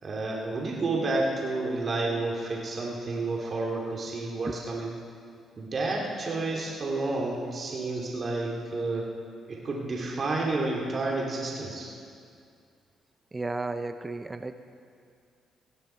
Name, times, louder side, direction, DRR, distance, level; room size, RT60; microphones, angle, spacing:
voice 1, 0.0-4.9 5.6-9.1 9.5-11.9, right 2 dB, 45° right, -2 dB, 2.8 m, -30 dB
voice 2, 13.3-14.5, right 3 dB, 20° right, 9 dB, 0.7 m, -34 dB
17.5 x 16.0 x 4.5 m, 2.3 s
cardioid pair, 90°, 0 cm